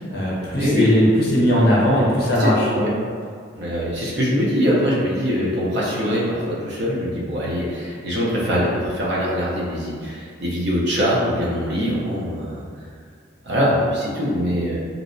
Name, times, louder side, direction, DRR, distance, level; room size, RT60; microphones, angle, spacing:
voice 1, 0.0-2.7, equal, 50° left, -6 dB, 0.6 m, -18 dB
voice 2, 0.5-0.9 2.4-2.9 3.6-12.6 13.4-14.8, equal, 55° right, -6 dB, 0.5 m, -22 dB
2.6 x 2.1 x 2.5 m, 2.1 s
head